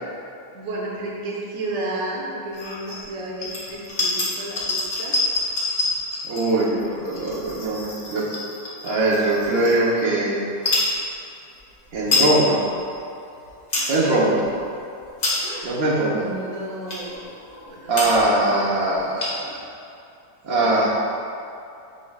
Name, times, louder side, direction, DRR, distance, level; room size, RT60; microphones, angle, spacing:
voice 1, 0.5-5.1 13.7-14.0 15.4-15.8 16.1-18.0 19.3-19.6 19.8-19.9 20.5-20.8, right 2 dB, 70° right, -4 dB, 1.3 m, -33 dB
sound 1, 2.5-3.0 3.4-10.1 10.5-10.9 11.5-11.6 11.9-12.3 12.8-12.9 13.4-13.9 14.4-14.6 15.0-15.6 16.2-16.3 16.9-17.2 17.7-17.8 17.9-18.3 18.6-18.7 18.9-19.6, left 2 dB, 55° left, 1.7 m, -26 dB
voice 2, 6.2-8.2 8.8-10.4 11.9-12.6 13.9-14.4 15.6-16.2 17.9-19.3 20.4-20.9, right 2 dB, 90° right, -6 dB, 1.6 m, -21 dB
6.8 x 6.5 x 2.4 m, 2.5 s
omnidirectional pair, 1.5 m